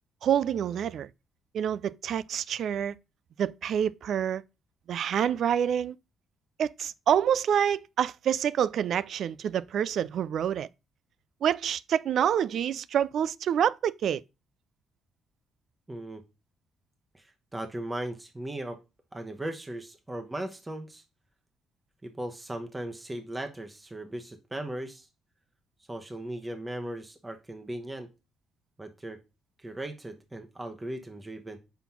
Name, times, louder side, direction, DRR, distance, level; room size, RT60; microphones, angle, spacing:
voice 1, 0.2-1.1 1.5-3.0 3.4-4.4 4.9-6.0 6.6-10.7 11.4-14.2, right 9 dB, 65° right, 0.3 m, -27 dB
voice 2, 15.9-16.2 17.1-18.8 19.1-21.0 22.0-25.1 25.9-28.1 28.8-29.2 29.6-31.6, right 1 dB, 20° right, 1.0 m, -37 dB
5.8 x 4.1 x 5.7 m
supercardioid pair, 55°, 0 cm